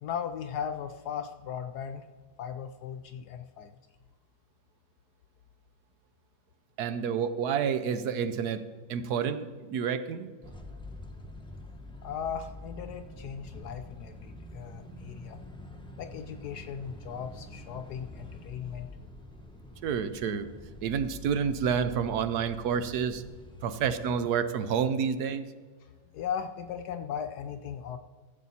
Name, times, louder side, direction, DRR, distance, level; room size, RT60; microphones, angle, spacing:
voice 1, 0.0-2.1 2.4-3.7 12.0-15.4 16.0-18.9 25.8-28.0, left 8 dB, 70° left, 8 dB, 1.0 m, -37 dB
voice 2, 6.8-8.6 8.9-10.3 19.8-20.5 20.8-23.2 23.6-25.4, right 7 dB, 70° right, 12 dB, 1.2 m, -29 dB
sound 1, 10.4-24.2, left 1 dB, 5° left, 0.7 m, -46 dB
14.5 x 7.6 x 4.2 m, 1.5 s
omnidirectional pair, 1.9 m